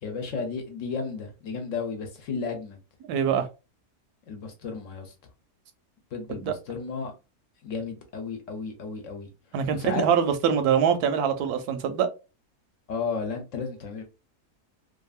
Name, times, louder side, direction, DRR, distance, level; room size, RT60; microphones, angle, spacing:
voice 1, 0.0-2.8 4.3-5.1 6.1-7.1 7.6-9.3 9.7-10.1 12.9-14.0, left 5 dB, 60° left, 1.1 m, -33 dB
voice 2, 3.0-3.5 6.3-6.5 9.5-12.1, right 7 dB, 90° right, 1.1 m, -24 dB
2.8 x 2.5 x 2.3 m
omnidirectional pair, 1.6 m